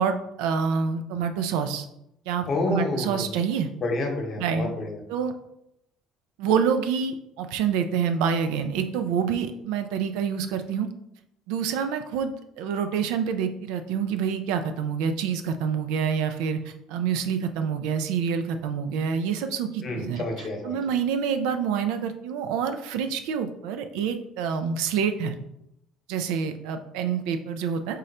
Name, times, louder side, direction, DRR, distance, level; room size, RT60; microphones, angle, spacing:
voice 1, 0.0-1.8 2.3-3.7 4.4-4.7 5.1-5.3 6.4-10.9 11.5-20.2 20.6-25.3 26.1-28.0, right 7 dB, 80° right, 8 dB, 0.4 m, -27 dB
voice 2, 2.5-3.3 3.8-5.0 19.8-20.8, left 2 dB, 50° left, 2 dB, 0.9 m, -29 dB
3.7 x 2.1 x 4.1 m, 0.81 s
supercardioid pair, 80°, 0 cm